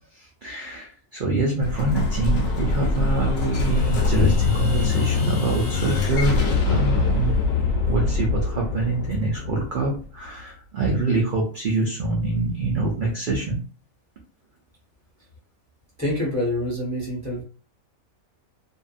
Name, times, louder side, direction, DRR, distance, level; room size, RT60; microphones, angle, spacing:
voice 1, 0.1-7.4 7.9-13.6, right 2 dB, 60° right, -1 dB, 0.5 m, -25 dB
Explosion, 1.6-10.3, left 4 dB, 70° left, 1.1 m, -23 dB
voice 2, 16.0-17.4, left 1 dB, 15° left, -5 dB, 0.6 m, -26 dB
2.6 x 2.3 x 2.4 m, 0.37 s
omnidirectional pair, 1.5 m